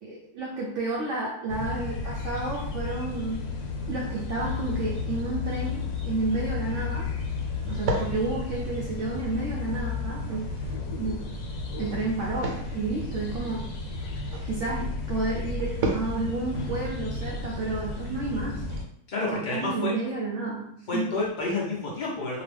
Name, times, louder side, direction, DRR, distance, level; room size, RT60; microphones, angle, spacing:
voice 1, 0.0-3.4 3.9-7.1 7.7-10.5 11.0-11.3 11.8-13.6 14.5-18.6 19.3-21.1, right 3 dB, 65° right, -4 dB, 0.7 m, -31 dB
sound 1, 1.5-18.8, left 3 dB, 80° left, 1.2 m, -33 dB
sound 2, 6.4-18.8, right 2 dB, 90° right, 1.2 m, -38 dB
voice 2, 19.1-19.9 20.9-22.4, left 2 dB, 50° left, -4 dB, 0.5 m, -29 dB
2.8 x 2.3 x 3.2 m, 0.70 s
omnidirectional pair, 1.7 m